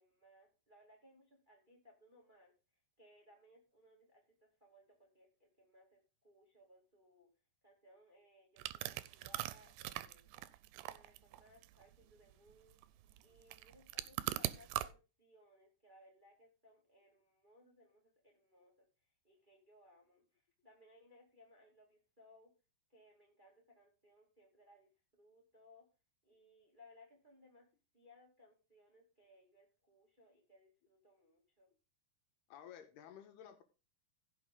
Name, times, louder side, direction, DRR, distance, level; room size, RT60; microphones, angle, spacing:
voice 1, 0.0-2.5 3.0-7.3 7.6-10.3 10.7-12.8 13.2-18.9 19.2-22.5 22.9-25.8 26.2-27.7 27.9-31.7, left 1 dB, 15° right, -1 dB, 2.1 m, -65 dB
sound 1, 8.6-14.9, right 16 dB, 90° right, 2.7 m, -42 dB
voice 2, 32.5-33.6, left 9 dB, 80° left, 7 dB, 3.3 m, -54 dB
15.5 x 6.7 x 3.8 m, 0.31 s
omnidirectional pair, 4.6 m